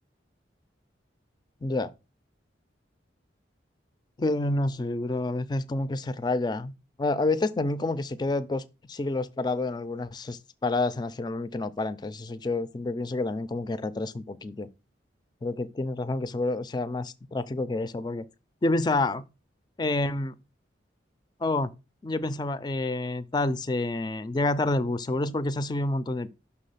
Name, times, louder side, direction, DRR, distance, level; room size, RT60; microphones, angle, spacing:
voice 1, 1.6-1.9 4.2-6.7 7.0-14.7 15.4-18.3 18.6-19.3 19.8-20.3 21.4-21.7 22.0-26.3, left 2 dB, 20° left, 0.3 m, -28 dB
6.0 x 3.3 x 5.5 m
head